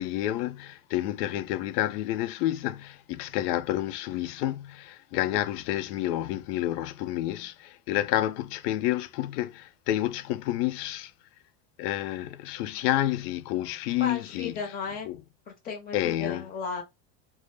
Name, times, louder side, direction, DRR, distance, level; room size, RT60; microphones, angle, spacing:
voice 1, 0.0-11.1 11.8-14.7 15.1-15.2 15.9-16.4, left 14 dB, 75° left, 0.5 m, -29 dB
voice 2, 14.0-15.1 15.5-16.8, left 5 dB, 20° left, 0.5 m, -35 dB
2.1 x 2.0 x 3.2 m
supercardioid pair, 160°, 47 cm